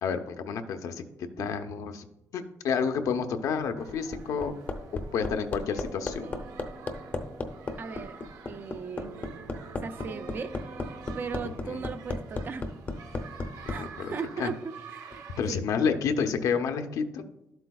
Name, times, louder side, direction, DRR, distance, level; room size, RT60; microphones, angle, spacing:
voice 1, 0.0-1.0 1.4-2.1 2.3-4.5 5.1-6.3 11.6-11.8 13.8-14.1 14.4-14.5 15.4-17.2, left 6 dB, 70° left, 7 dB, 0.7 m, -29 dB
Hammer, 3.6-13.8 15.1-15.2, left 3 dB, 30° left, 0.7 m, -34 dB
sound 1, 3.8-15.4, right 6 dB, 80° right, 0.9 m, -49 dB
sound 2, 5.3-11.4, right 3 dB, 60° right, 1.2 m, -48 dB
voice 2, 7.8-8.2 8.5-9.2 9.8-10.5 11.1-12.6 13.7-14.6 14.9-15.6, right 5 dB, 35° right, 10 dB, 0.4 m, -37 dB
12.5 x 7.8 x 2.3 m, 0.88 s
cardioid pair, 175°, 6 cm